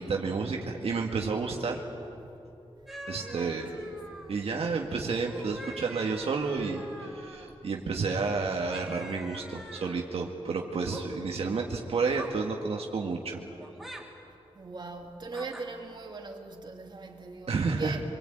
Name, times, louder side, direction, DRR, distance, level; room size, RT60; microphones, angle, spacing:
voice 1, 0.0-1.8 3.1-3.7 4.3-13.4 17.5-18.0, right 4 dB, 75° right, 2.0 m, -31 dB
sound 1, 2.9-4.5 5.1-7.5 8.7-10.1 10.7-11.1 12.1-12.4 13.6-14.0 15.3-15.7, right 1 dB, ahead, 3.7 m, -45 dB
voice 2, 3.1-3.9 14.5-18.0, right 3 dB, 45° right, 2.6 m, -40 dB
25.5 x 23.0 x 8.9 m
wide cardioid pair, 115°, 10 cm